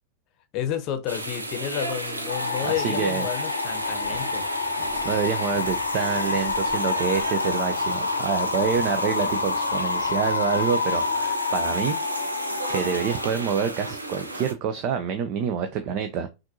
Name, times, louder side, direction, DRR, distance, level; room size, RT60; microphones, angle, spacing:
voice 1, 0.5-4.4, left 10 dB, 40° left, 0.8 m, -31 dB
sound 1, 1.1-14.5, right 2 dB, 80° right, 0.8 m, -33 dB
sound 2, 2.3-13.3, left 4 dB, 75° left, 0.4 m, -28 dB
voice 2, 2.6-3.3 5.0-12.0 12.7-16.3, right 7 dB, 40° right, 0.5 m, -27 dB
Walk footsteps, 3.6-11.3, right 4 dB, 60° right, 1.1 m, -46 dB
5.8 x 2.6 x 2.6 m
figure-of-eight pair, 90°, 0 cm